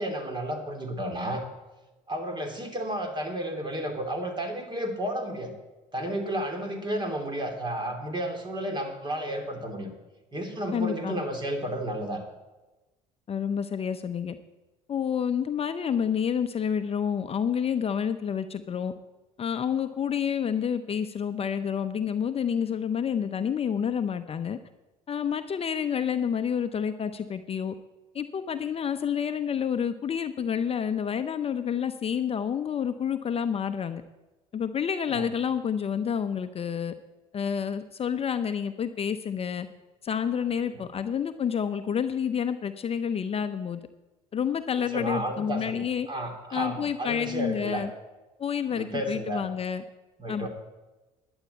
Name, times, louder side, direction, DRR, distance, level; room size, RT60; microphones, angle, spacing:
voice 1, 0.0-1.4 2.1-5.5 5.9-9.9 10.3-12.2 35.1-35.2 44.9-47.8 48.7-49.4 50.2-50.5, right 1 dB, 30° right, 4 dB, 3.2 m, -32 dB
voice 2, 10.7-11.2 13.3-14.4 14.9-18.9 19.4-24.6 25.1-27.7 28.1-34.0 34.5-36.9 37.3-39.7 40.0-43.8 44.3-46.1 46.5-47.9 48.4-49.8 50.3-50.5, left 7 dB, 35° left, 9 dB, 0.7 m, -29 dB
11.5 x 8.0 x 8.3 m, 1.1 s
supercardioid pair, 75°, 16 cm